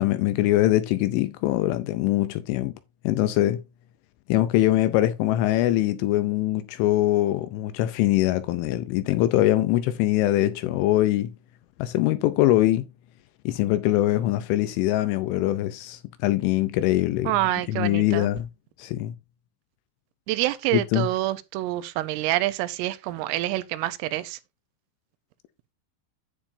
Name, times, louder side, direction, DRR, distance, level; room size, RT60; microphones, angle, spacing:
voice 1, 0.0-2.7 3.0-3.6 4.3-11.3 11.8-12.9 13.5-17.3 17.7-18.5 18.8-19.1 20.7-21.1, left 15 dB, 80° left, 2.9 m, -23 dB
voice 2, 17.2-18.3 20.3-24.4, right 16 dB, 85° right, 3.3 m, -27 dB
10.0 x 8.6 x 2.6 m
omnidirectional pair, 5.9 m